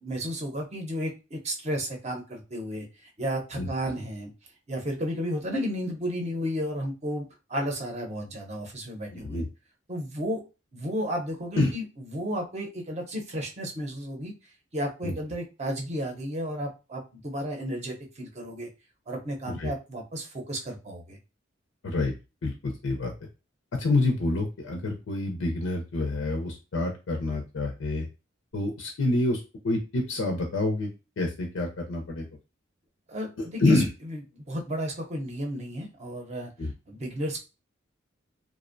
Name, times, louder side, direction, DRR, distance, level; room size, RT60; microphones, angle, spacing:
voice 1, 0.0-4.3 4.7-9.4 9.9-10.4 10.7-14.3 14.7-18.7 19.1-21.2 33.1-37.4, equal, 35° right, 1 dB, 0.6 m, -33 dB
voice 2, 9.1-9.5 11.6-11.7 15.0-15.1 19.5-19.7 21.8-22.1 22.4-23.1 23.8-28.1 28.5-30.9 31.2-32.3 33.4-33.9 36.6-36.7, left 2 dB, 85° left, 2 dB, 0.5 m, -27 dB
2.5 x 2.0 x 2.5 m, 0.29 s
head